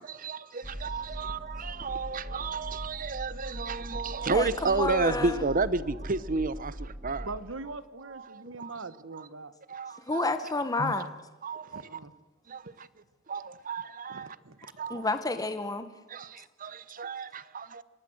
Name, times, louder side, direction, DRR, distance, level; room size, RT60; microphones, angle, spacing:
sound 1, 0.6-7.4, equal, 15° right, 1.6 m, -40 dB
voice 1, 0.8-7.3 8.1-8.7 9.7-10.2 11.0-11.1 11.4-11.8 12.5-12.6 13.3-14.4 14.8-15.1 16.1-17.8, right 3 dB, 45° right, 0.9 m, -32 dB
voice 2, 4.3-5.5 10.1-11.1 14.9-15.9, left 3 dB, 20° left, 1.1 m, -30 dB
voice 3, 7.2-9.5 10.8-10.9 11.6-12.1 12.8-12.9 13.5-13.6 14.1-14.7, right 2 dB, 70° right, 1.2 m, -41 dB
26.5 x 19.0 x 8.0 m
head